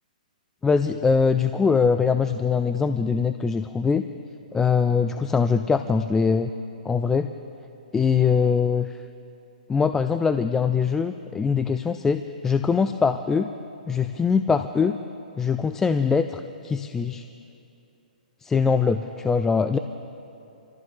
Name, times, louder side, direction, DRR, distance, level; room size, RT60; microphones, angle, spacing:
voice 1, 0.6-4.0 4.5-6.5 6.8-7.3 7.9-8.9 9.7-13.5 13.9-15.0 15.4-17.3 18.4-19.8, left 5 dB, 10° left, 9 dB, 0.3 m, -22 dB
26.5 x 14.5 x 3.4 m, 2.8 s
hypercardioid pair, 140°, 5 cm